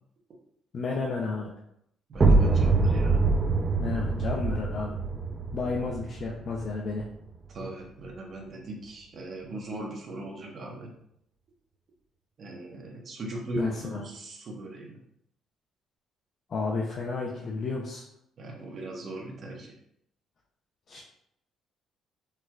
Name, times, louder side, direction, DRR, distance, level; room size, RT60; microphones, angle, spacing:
voice 1, 0.7-1.5 3.8-5.0 5.5-7.1 13.6-14.0 16.5-18.0 20.9-21.0, left 4 dB, 50° left, -2 dB, 0.5 m, -32 dB
sound 1, 2.1-7.7, right 3 dB, 30° right, 0.3 m, -25 dB
voice 2, 2.1-3.2 7.5-10.9 12.4-15.0 18.4-19.7, right 1 dB, 50° right, -1 dB, 0.9 m, -39 dB
4.4 x 2.3 x 2.2 m, 0.74 s
cardioid pair, 95°, 0 cm